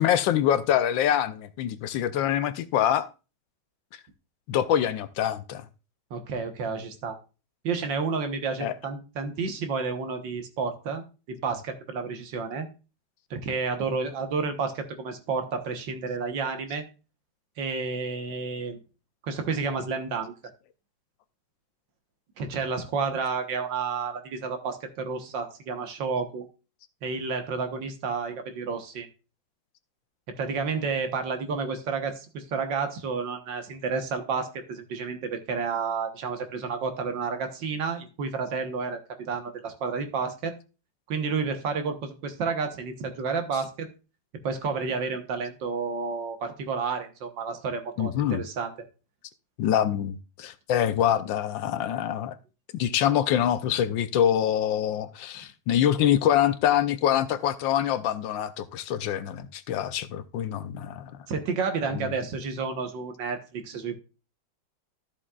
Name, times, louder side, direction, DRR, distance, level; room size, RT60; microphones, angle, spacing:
voice 1, 0.0-3.1 4.5-5.6 8.6-8.7 48.0-48.4 49.6-52.3 52.7-61.1, left 10 dB, 75° left, 1.3 m, -25 dB
voice 2, 6.1-7.2 7.6-12.7 13.3-16.8 17.6-18.8 19.2-20.3 22.4-26.5 27.0-29.1 30.3-40.5 41.1-43.9 44.4-48.7 61.3-63.9, right 5 dB, 65° right, 1.8 m, -30 dB
13.5 x 7.4 x 2.4 m
omnidirectional pair, 2.2 m